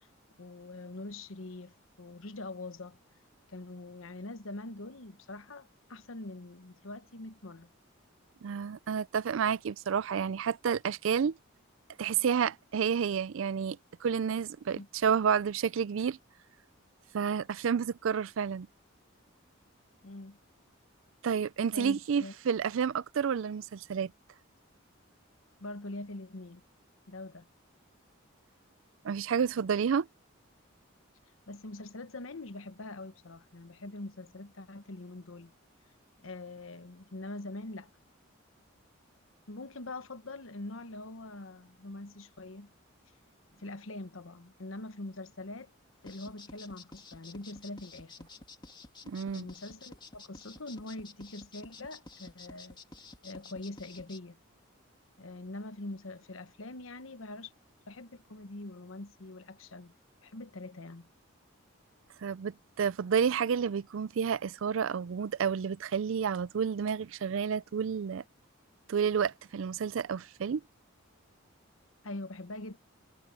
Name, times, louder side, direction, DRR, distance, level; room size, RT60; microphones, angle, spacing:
voice 1, 0.4-3.0 3.5-7.7 14.7-14.9 20.0-20.4 21.7-22.3 25.6-26.6 27.1-27.5 31.5-35.5 36.2-37.9 39.5-42.7 43.5-45.7 46.0-48.3 49.3-52.8 53.2-54.4 55.2-57.5 57.9-59.9 60.2-61.1 72.0-72.8, left 2 dB, 75° left, 1.1 m, -43 dB
voice 2, 8.4-11.4 12.0-16.2 17.1-18.7 21.2-24.1 29.0-30.1 49.1-49.5 62.2-68.2 68.9-70.6, right 7 dB, 70° right, 0.4 m, -30 dB
sound 1, 46.0-54.2, left 3 dB, 20° left, 2.4 m, -51 dB
head